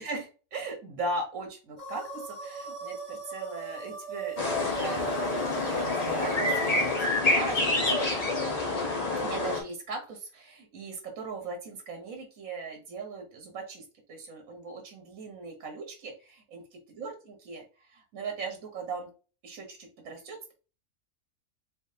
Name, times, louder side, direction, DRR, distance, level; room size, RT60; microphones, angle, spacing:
voice 1, 0.0-5.8 6.1-8.1 9.2-13.8 14.1-17.6 17.9-19.1 19.4-20.5, right 3 dB, 75° right, 3 dB, 1.4 m, -39 dB
sound 1, 1.8-7.0, right 4 dB, 35° right, 1.5 m, -38 dB
sound 2, 4.4-9.6, left 2 dB, 30° left, 1.0 m, -27 dB
4.0 x 3.5 x 2.8 m, 0.35 s
omnidirectional pair, 1.4 m